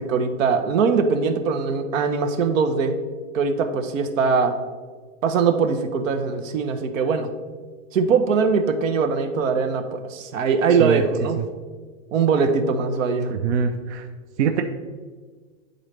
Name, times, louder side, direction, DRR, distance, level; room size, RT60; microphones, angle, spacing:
voice 1, 0.0-2.9 3.3-4.6 5.2-7.3 7.9-11.4 12.1-13.3, right 5 dB, 85° right, 7 dB, 0.9 m, -21 dB
voice 2, 13.3-14.0 14.4-14.6, right 7 dB, 60° right, 5 dB, 0.5 m, -23 dB
9.9 x 4.0 x 3.2 m, 1.5 s
supercardioid pair, 180°, 39 cm